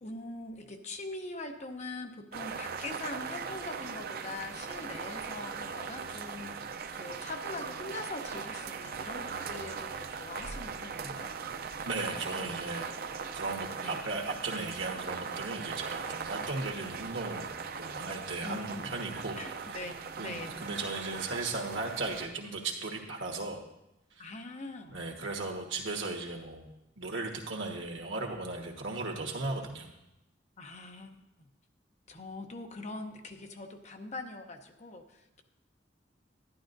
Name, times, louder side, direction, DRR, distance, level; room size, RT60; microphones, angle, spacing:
voice 1, 0.0-11.3 13.8-14.1 16.5-16.6 18.4-19.0 19.3-20.7 24.2-25.0 30.6-31.2 32.1-35.4, left 2 dB, 40° left, 5 dB, 0.7 m, -42 dB
sound 1, 2.3-22.3, right 5 dB, 55° right, 0.5 m, -39 dB
voice 2, 11.8-12.9 13.3-19.4 20.2-23.6 24.2-24.3 24.9-26.7 27.0-29.9, right 3 dB, 85° right, 1 dB, 1.4 m, -36 dB
11.5 x 11.0 x 2.6 m, 0.91 s
head